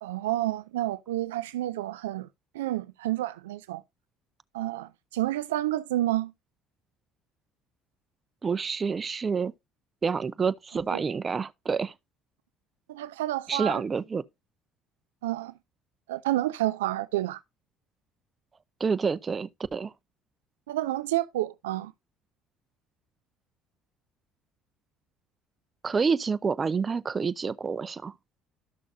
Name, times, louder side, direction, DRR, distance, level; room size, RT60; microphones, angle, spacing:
voice 1, 0.0-2.3 2.5-3.8 4.5-6.3 10.9-11.0 12.9-13.8 15.2-15.5 16.1-17.4 20.7-21.9, right 15 dB, 85° right, 0.4 m, -29 dB
voice 2, 8.4-9.5 10.0-11.9 13.5-14.2 18.8-19.9 25.8-28.1, right 5 dB, 35° right, 0.7 m, -28 dB
13.5 x 6.3 x 2.6 m
hypercardioid pair, 65°, 0 cm